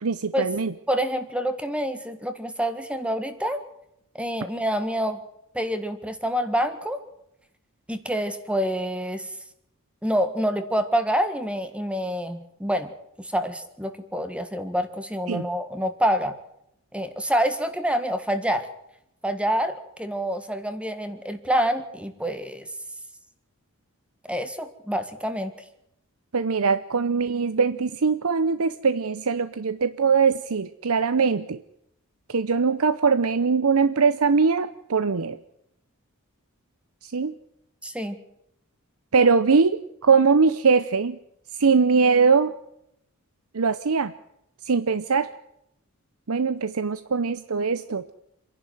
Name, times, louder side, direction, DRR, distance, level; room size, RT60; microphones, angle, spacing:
voice 1, 0.0-0.7 15.3-15.4 26.3-31.6 32.3-35.4 37.0-37.3 39.1-41.2 41.6-42.5 43.5-44.1 44.7-45.3 46.3-48.0, right 5 dB, 70° right, 13 dB, 0.7 m, -21 dB
voice 2, 0.9-3.6 4.2-5.2 5.5-7.0 7.9-9.3 10.0-12.9 13.2-16.3 16.9-18.7 19.2-22.7 24.2-25.5 37.8-38.2, equal, 5° right, 9 dB, 1.7 m, -27 dB
27.0 x 11.0 x 9.3 m, 0.78 s
head